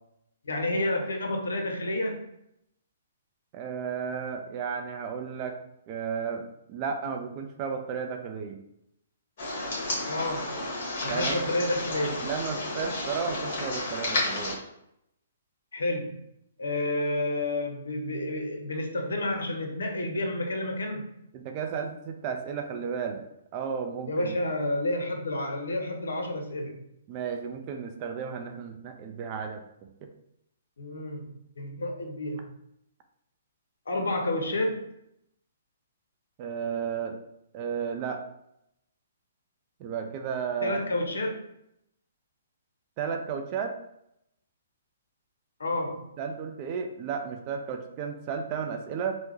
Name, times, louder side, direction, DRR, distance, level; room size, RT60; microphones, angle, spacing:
voice 1, 0.4-2.2 10.1-10.6 11.0-12.3 15.7-16.2 16.6-21.0 24.1-26.8 30.8-31.3 31.6-32.5 33.9-34.8 40.6-41.4 45.6-46.1, left 1 dB, 85° left, 3 dB, 0.7 m, -30 dB
voice 2, 3.5-5.6 5.9-8.6 11.1-11.4 12.2-14.6 21.3-23.2 23.5-24.3 27.1-29.6 30.0-30.1 36.4-37.2 37.5-38.2 39.8-40.8 43.0-43.8 46.2-49.1, right 6 dB, 35° right, 4 dB, 0.4 m, -33 dB
sound 1, 9.4-14.5, left 2 dB, 55° left, 1.4 m, -31 dB
3.4 x 2.0 x 3.1 m, 0.79 s
hypercardioid pair, 140°, 0 cm